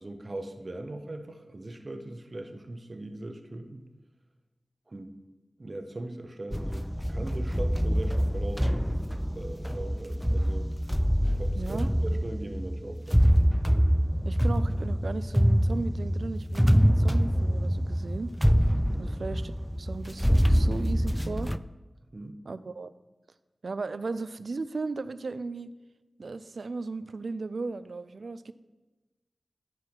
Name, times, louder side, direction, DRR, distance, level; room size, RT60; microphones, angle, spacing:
voice 1, 0.0-3.8 4.9-5.1 5.6-8.8 9.3-10.7 11.4-13.2 18.9-19.2 22.1-22.4, right 2 dB, 50° right, 6 dB, 0.9 m, -40 dB
sound 1, 6.5-21.6, equal, ahead, 0.3 m, -25 dB
voice 2, 11.6-11.9 14.2-18.3 19.0-19.5 19.8-21.5 22.5-22.9 23.6-25.7 26.2-28.5, right 3 dB, 80° right, 14 dB, 0.4 m, -36 dB
10.5 x 4.7 x 5.9 m, 1.1 s
cardioid pair, 45°, 0 cm